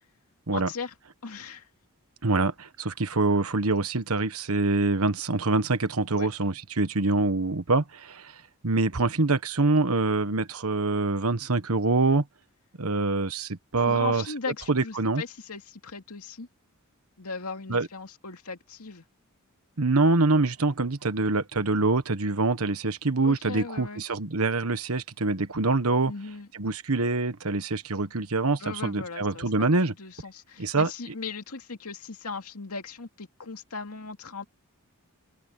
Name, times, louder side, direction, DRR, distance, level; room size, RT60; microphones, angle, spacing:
voice 1, 0.5-0.9 1.2-1.7 6.1-6.3 13.8-16.5 17.2-19.0 23.2-24.0 26.1-26.5 28.6-34.4, left 4 dB, 80° left, 2.4 m, -38 dB
voice 2, 2.2-8.3 8.6-12.2 12.8-14.2 14.7-15.2 17.7-17.9 19.8-26.1 26.5-29.9 30.6-30.9, right 3 dB, 70° right, 1.3 m, -25 dB
head